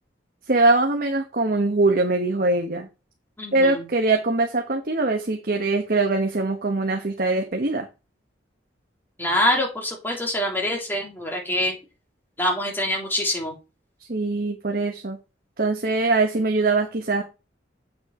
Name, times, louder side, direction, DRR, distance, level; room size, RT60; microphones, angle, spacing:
voice 1, 0.5-2.9 3.5-7.9 14.1-15.2 15.6-17.2, right 2 dB, 55° right, 4 dB, 1.2 m, -22 dB
voice 2, 3.4-3.9 9.2-11.8 12.4-13.5, left 1 dB, 10° left, -1 dB, 3.4 m, -25 dB
8.3 x 6.2 x 4.9 m, 0.29 s
head